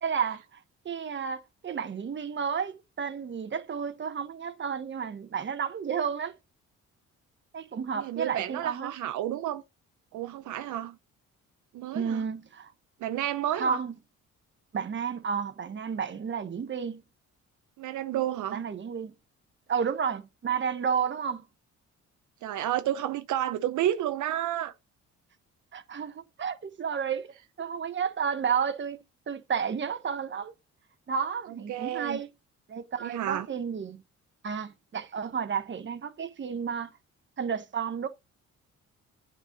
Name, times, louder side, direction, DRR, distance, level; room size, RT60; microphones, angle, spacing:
voice 1, 0.0-0.6 0.8-6.3 7.5-8.9 11.9-12.7 13.6-13.9 14.7-17.0 18.5-19.1 19.7-21.5 25.7-29.0 29.3-30.5 31.1-32.3 32.7-34.0 34.4-36.9 37.4-38.1, right 6 dB, 40° right, 1.2 m, -31 dB
voice 2, 7.9-9.6 10.1-11.0 11.7-12.2 13.0-13.8 17.8-18.6 22.4-24.7 31.5-32.2 33.0-33.5, right 12 dB, 75° right, 0.7 m, -31 dB
8.9 x 4.5 x 3.9 m
cardioid pair, 90°, 30 cm